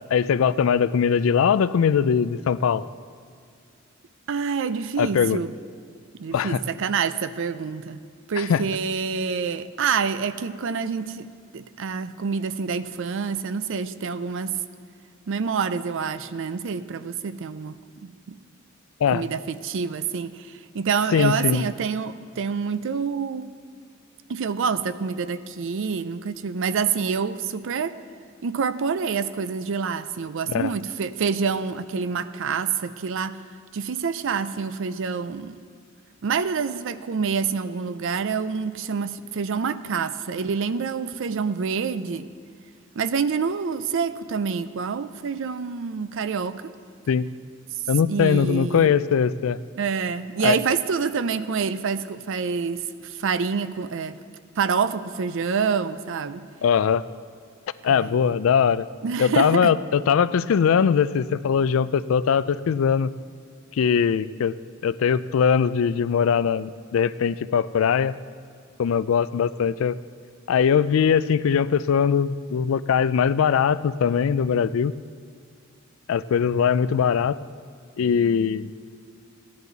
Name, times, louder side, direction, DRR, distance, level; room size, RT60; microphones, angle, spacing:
voice 1, 0.1-2.9 5.0-5.4 6.3-6.6 8.4-8.6 19.0-19.2 21.1-21.7 30.5-30.7 47.1-47.2 47.9-49.6 50.4-50.6 56.6-57.0 57.8-58.9 59.2-63.1 63.8-64.6 64.8-68.2 68.8-70.0 70.5-74.9 76.1-77.4 78.0-78.7, left 7 dB, 70° left, 16 dB, 0.3 m, -21 dB
voice 2, 4.3-5.5 6.2-8.0 8.3-11.3 11.5-14.6 15.3-18.4 19.1-23.5 24.3-28.0 28.4-33.4 33.7-35.6 36.2-42.3 42.9-46.7 47.7-47.8 48.1-48.9 49.8-54.2 54.6-56.4 57.9-58.4 59.0-59.7, right 5 dB, 65° right, 14 dB, 0.5 m, -27 dB
16.0 x 10.5 x 4.0 m, 2.2 s
head